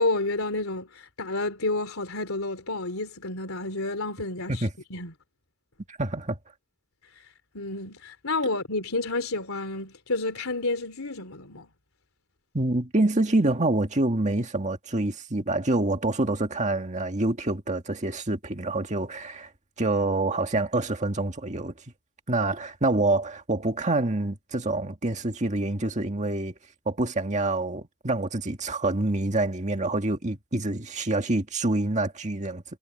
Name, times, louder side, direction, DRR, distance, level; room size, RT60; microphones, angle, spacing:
voice 1, 0.0-4.6 4.9-5.1 7.5-11.7, left 2 dB, 85° left, 3.1 m, -30 dB
voice 2, 5.9-6.4 12.5-19.5 19.8-21.7 22.3-26.5 26.9-32.6, right 2 dB, 35° right, 1.8 m, -26 dB
head